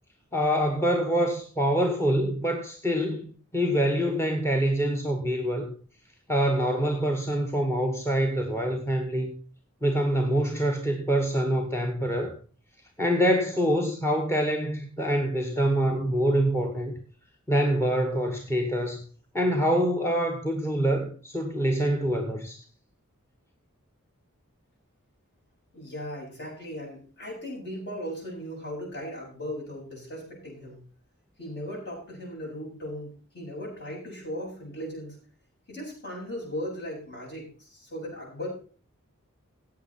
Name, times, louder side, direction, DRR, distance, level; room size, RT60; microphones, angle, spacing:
voice 1, 0.3-5.7 6.3-9.3 9.8-12.4 13.0-16.9 17.5-19.0 19.3-22.6, equal, 10° left, 1.2 m, -25 dB
voice 2, 25.7-30.8 31.4-35.2 35.7-38.5, equal, 50° left, 7.9 m, -37 dB
15.5 x 8.7 x 4.3 m
head